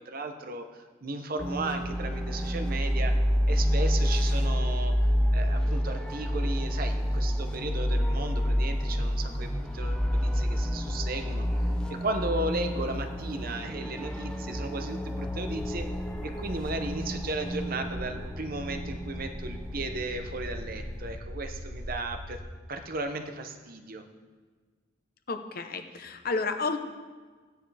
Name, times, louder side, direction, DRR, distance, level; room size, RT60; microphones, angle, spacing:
voice 1, 0.0-3.1 3.5-4.9 5.3-15.9 16.2-22.4 22.7-24.0, right 2 dB, 45° right, 6 dB, 0.9 m, -35 dB
sound 1, 1.4-21.2, equal, 5° left, 0.7 m, -29 dB
sound 2, 15.2-22.5, left 1 dB, 80° left, 1.1 m, -40 dB
voice 2, 25.3-26.8, left 4 dB, 50° left, 7 dB, 0.8 m, -31 dB
15.5 x 9.5 x 3.4 m, 1.5 s
head